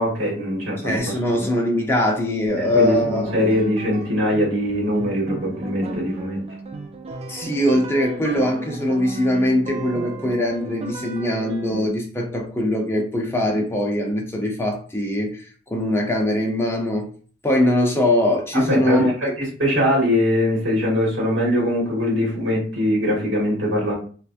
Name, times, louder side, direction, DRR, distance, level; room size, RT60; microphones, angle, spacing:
voice 1, 0.0-1.4 2.8-6.4 18.5-19.1 19.4-23.9, equal, 85° right, 1.8 m, -22 dB
voice 2, 0.8-3.3 7.3-15.4 15.7-17.1 17.4-19.3, left 1 dB, 15° left, 0.8 m, -22 dB
sound 1, 2.5-11.9, right 3 dB, 35° right, 0.4 m, -35 dB
3.3 x 3.1 x 2.5 m
head